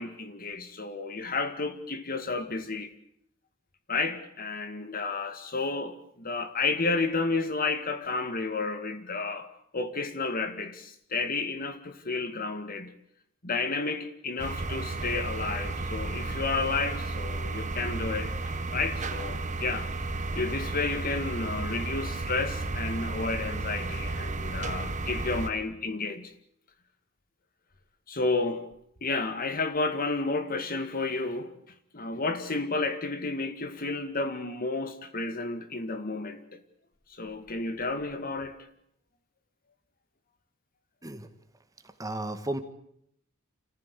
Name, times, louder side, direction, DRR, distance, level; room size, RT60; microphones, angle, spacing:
voice 1, 0.0-2.9 3.9-9.5 9.7-12.9 13.4-18.3 18.7-19.9 20.3-26.3 28.1-28.7 29.0-31.6 31.9-36.5 37.1-38.6, left 3 dB, 45° left, 2.1 m, -31 dB
sound 1, 14.4-25.5, right 3 dB, 35° right, 1.6 m, -33 dB
voice 2, 42.0-42.6, right 1 dB, 15° right, 1.7 m, -33 dB
27.5 x 15.0 x 8.3 m
head